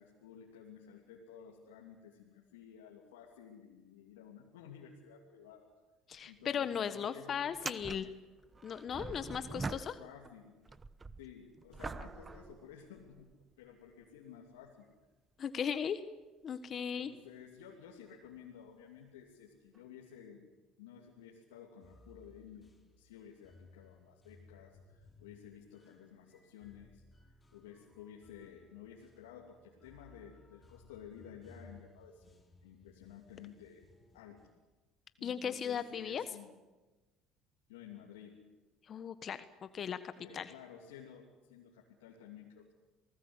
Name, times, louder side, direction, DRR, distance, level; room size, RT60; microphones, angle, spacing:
voice 1, 0.0-5.7 6.3-8.1 9.0-10.6 11.2-14.9 16.7-20.5 20.8-32.2 32.6-33.9 34.1-34.5 35.2-36.5 37.7-38.5 40.2-42.7, left 8 dB, 85° left, -1 dB, 2.8 m, -53 dB
voice 2, 6.1-8.1 8.6-9.9 15.4-16.0 16.4-17.1 35.2-36.2 38.9-40.0 40.3-40.5, left 8 dB, 45° left, 12 dB, 1.3 m, -37 dB
sound 1, 6.1-6.3 6.5-6.6 7.5-10.3 10.6-13.3 14.0-14.1 18.3-18.4 19.7-19.8, right 4 dB, 25° right, 1.0 m, -45 dB
sound 2, 21.8-34.6, left 2 dB, 20° left, 6.1 m, -61 dB
27.5 x 19.0 x 8.1 m, 1.2 s
hypercardioid pair, 65°, 0 cm